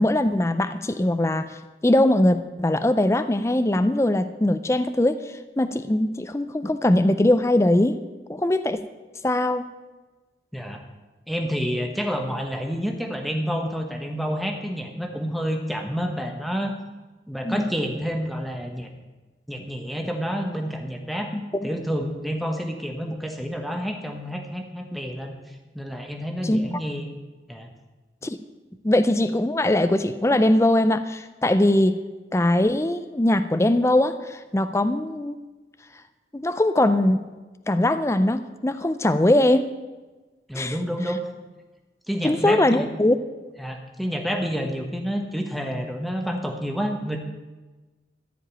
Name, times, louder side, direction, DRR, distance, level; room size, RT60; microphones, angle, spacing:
voice 1, 0.0-8.0 8.3-8.8 9.2-9.6 17.4-17.6 21.6-21.7 26.4-26.6 28.2-28.4 28.8-32.0 32.3-35.4 36.3-37.3 37.7-39.7 40.5-40.7 42.2-43.2, left 1 dB, 15° left, 11 dB, 0.4 m, -21 dB
voice 2, 11.3-16.7 17.3-18.9 19.5-21.3 21.6-27.1 27.5-27.7 40.5-41.2 42.1-42.9 43.6-47.2, equal, ahead, 3 dB, 1.2 m, -29 dB
14.0 x 5.2 x 9.0 m, 1.2 s
head